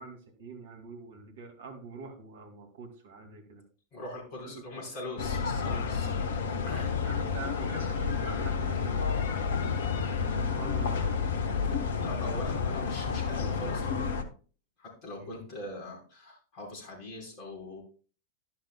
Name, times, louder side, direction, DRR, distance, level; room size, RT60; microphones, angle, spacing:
voice 1, 0.0-3.6 4.4-4.8 6.0-6.4 7.0-9.3 10.0-11.3 15.2-15.4, right 4 dB, 60° right, 4 dB, 2.4 m, -45 dB
voice 2, 3.9-6.9 12.0-14.1 14.8-17.8, left 1 dB, 40° left, -1 dB, 4.9 m, -42 dB
sound 1, 5.2-14.2, left 5 dB, 60° left, 1.1 m, -30 dB
12.0 x 11.5 x 2.3 m, 0.39 s
figure-of-eight pair, 90°, 0 cm